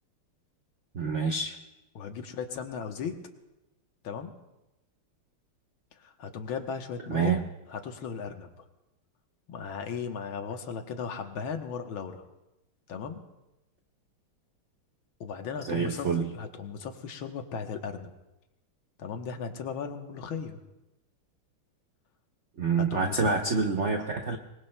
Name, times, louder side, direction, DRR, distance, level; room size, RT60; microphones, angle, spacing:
voice 1, 0.9-1.6 7.1-7.4 15.6-16.3 22.6-24.4, right 5 dB, 70° right, 4 dB, 0.6 m, -27 dB
voice 2, 1.9-3.2 4.0-4.3 6.0-7.4 7.7-8.5 9.5-12.2 12.9-13.2 15.2-18.1 19.0-20.6 22.8-23.3, left 6 dB, 70° left, 5 dB, 1.8 m, -36 dB
25.0 x 21.0 x 2.2 m, 0.97 s
omnidirectional pair, 2.4 m